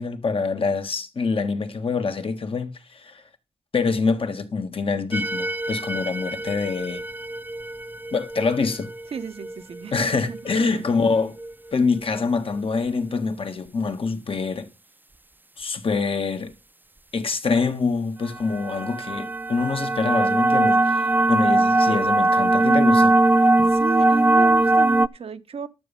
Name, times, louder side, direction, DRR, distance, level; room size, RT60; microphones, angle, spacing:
voice 1, 0.0-3.2 3.7-7.0 8.1-8.9 9.9-11.4 11.7-14.7 15.6-16.5 17.1-23.2 23.6-23.7, left 4 dB, 70° left, 1.7 m, -25 dB
sound 1, 5.1-11.5 18.4-25.1, right 2 dB, 20° right, 0.5 m, -21 dB
voice 2, 9.1-10.8 23.7-25.7, right 6 dB, 85° right, 1.0 m, -33 dB
12.0 x 7.2 x 5.3 m
cardioid pair, 45°, 10 cm